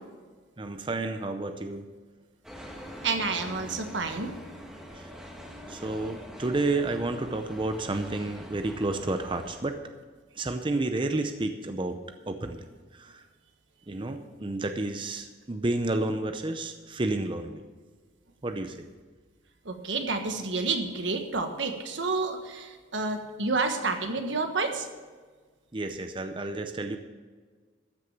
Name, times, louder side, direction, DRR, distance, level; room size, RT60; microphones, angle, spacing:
voice 1, 0.6-1.9 4.9-5.1 5.7-9.8 10.3-12.6 12.9-13.3 13.9-17.6 18.4-18.8 25.7-27.0, right 2 dB, 25° right, 7 dB, 0.6 m, -31 dB
sound 1, 2.4-9.6, equal, 5° right, 1.6 m, -44 dB
voice 2, 3.0-4.3 19.6-24.9, right 3 dB, 80° right, 6 dB, 1.4 m, -29 dB
14.0 x 6.4 x 7.1 m, 1.5 s
head